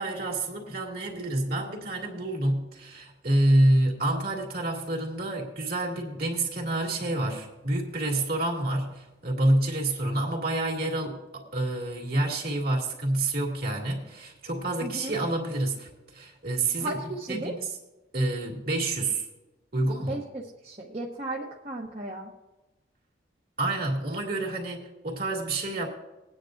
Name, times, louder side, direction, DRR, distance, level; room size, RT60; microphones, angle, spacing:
voice 1, 0.0-17.0 17.3-17.8 18.1-19.3 19.7-20.2 23.6-25.9, right 1 dB, 55° right, -1 dB, 2.5 m, -28 dB
voice 2, 14.8-15.1 16.8-17.5 20.1-22.3, right 2 dB, 35° right, -2 dB, 1.0 m, -35 dB
21.0 x 9.5 x 2.6 m, 1.1 s
head